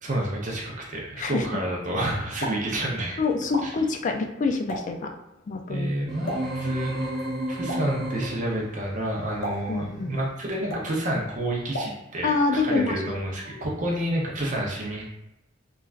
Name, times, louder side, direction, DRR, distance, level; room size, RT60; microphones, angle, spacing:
voice 1, 0.0-3.2 3.6-3.7 5.7-15.0, right 1 dB, 40° right, -2 dB, 0.5 m, -29 dB
Explosion, 2.2-12.4, equal, 70° left, 0.7 m, -40 dB
voice 2, 3.2-5.1 5.5-5.9 9.7-10.1 12.2-13.2 13.5-13.6, left 4 dB, 40° left, 4 dB, 0.3 m, -26 dB
sound 1, 6.1-8.7, right 1 dB, ahead, 0.8 m, -31 dB
3.2 x 2.4 x 2.4 m, 0.90 s
head